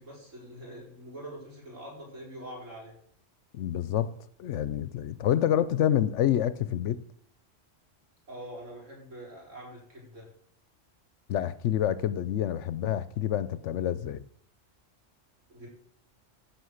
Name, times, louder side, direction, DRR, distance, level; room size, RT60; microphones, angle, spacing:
voice 1, 0.0-2.9 8.3-10.3 15.5-15.7, right 1 dB, 75° right, 5.3 m, -44 dB
voice 2, 3.5-4.1 4.4-7.0 11.3-14.2, left 11 dB, 70° left, 0.9 m, -27 dB
15.5 x 6.2 x 6.4 m
omnidirectional pair, 1.3 m